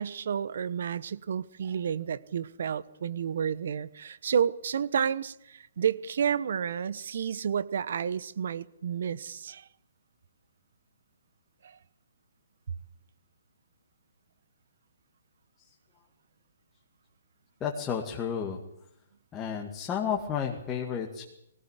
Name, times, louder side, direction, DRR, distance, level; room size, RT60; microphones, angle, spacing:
voice 1, 0.0-9.7 11.6-11.8, right 7 dB, 65° right, 17 dB, 1.1 m, -31 dB
voice 2, 17.6-18.6 19.3-21.2, left 7 dB, 20° left, 0 dB, 2.2 m, -32 dB
20.5 x 18.5 x 8.3 m, 0.78 s
hypercardioid pair, 145°, 0 cm